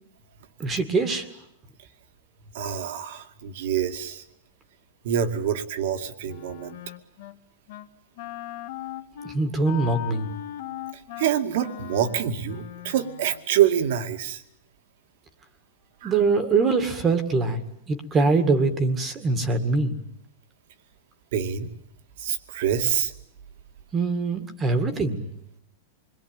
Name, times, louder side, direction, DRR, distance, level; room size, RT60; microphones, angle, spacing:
voice 1, 0.6-1.3 9.2-10.3 16.0-17.6 17.9-20.0 23.9-25.3, right 3 dB, 15° right, 10 dB, 2.1 m, -23 dB
voice 2, 2.5-4.2 5.0-6.8 10.9-14.4 16.0-16.1 21.3-21.7 22.2-23.1, right 9 dB, 55° right, 8 dB, 2.4 m, -26 dB
Wind instrument woodwind instrument, 6.2-7.4 7.7-7.9 8.2-13.5, left 13 dB, 55° left, 1.9 m, -39 dB
28.0 x 22.0 x 9.0 m, 0.76 s
supercardioid pair, 160°, 0 cm